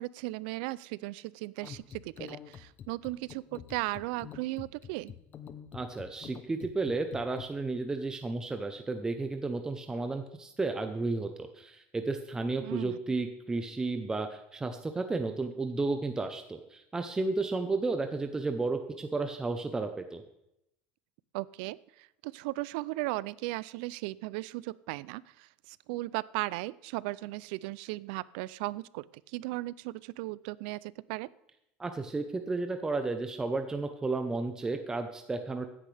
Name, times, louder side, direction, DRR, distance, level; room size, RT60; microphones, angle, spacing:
voice 1, 0.0-5.1 12.6-13.0 21.3-31.3, right 20 dB, 85° right, 21 dB, 0.4 m, -37 dB
sound 1, 1.6-7.4, left 8 dB, 35° left, 0.8 m, -46 dB
voice 2, 5.7-20.2 31.8-35.7, right 3 dB, 15° right, 6 dB, 0.8 m, -33 dB
14.0 x 10.0 x 3.4 m, 0.83 s
cardioid pair, 135°, 5 cm